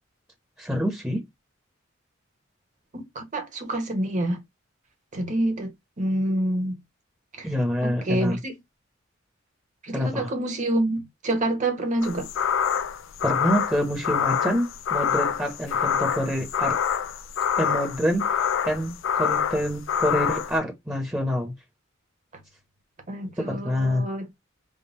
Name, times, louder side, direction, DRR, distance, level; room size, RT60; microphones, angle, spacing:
voice 1, 0.6-1.2 7.4-8.4 9.9-10.3 13.2-16.8 17.6-21.5 23.4-24.0, equal, 10° right, 0.9 m, -26 dB
voice 2, 2.9-4.4 5.1-6.8 7.4-7.5 7.8-8.6 9.8-12.3 23.1-24.3, right 1 dB, 40° right, 1.1 m, -27 dB
sound 1, 12.0-20.6, left 7 dB, 70° left, 0.4 m, -26 dB
3.7 x 2.2 x 4.0 m
head